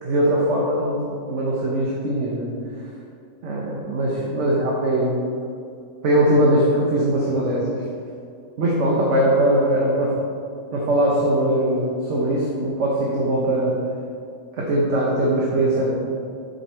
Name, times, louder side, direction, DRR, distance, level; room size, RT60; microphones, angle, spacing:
voice 1, 0.0-2.5 2.7-2.8 3.4-5.2 6.0-7.8 8.6-10.1 10.7-13.8 14.6-15.9, right 1 dB, 55° right, -3 dB, 1.2 m, -21 dB
7.6 x 5.4 x 4.5 m, 2.5 s
omnidirectional pair, 1.6 m